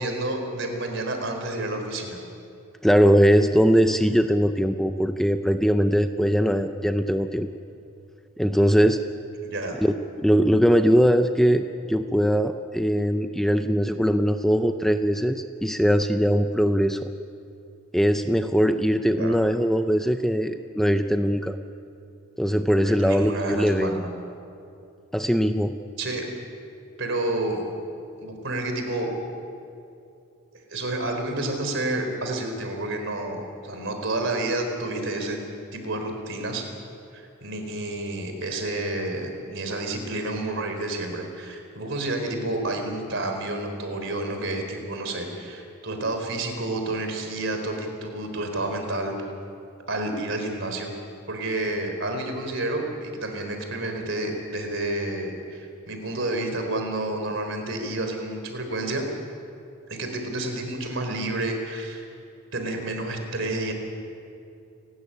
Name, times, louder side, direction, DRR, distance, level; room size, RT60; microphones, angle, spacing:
voice 1, 0.0-2.2 9.4-9.8 19.2-19.4 22.8-24.0 26.0-26.2 27.0-27.6 28.2-29.1 30.5-35.4 35.7-36.7 37.1-49.2 49.9-50.9 51.3-59.0 59.9-62.0 62.5-63.7, right 2 dB, 60° right, 5 dB, 4.0 m, -30 dB
voice 2, 2.8-7.5 8.4-9.0 10.2-17.1 17.9-21.6 22.4-24.0 25.1-25.7, equal, ahead, 7 dB, 0.6 m, -21 dB
29.5 x 13.5 x 10.0 m, 2.6 s
head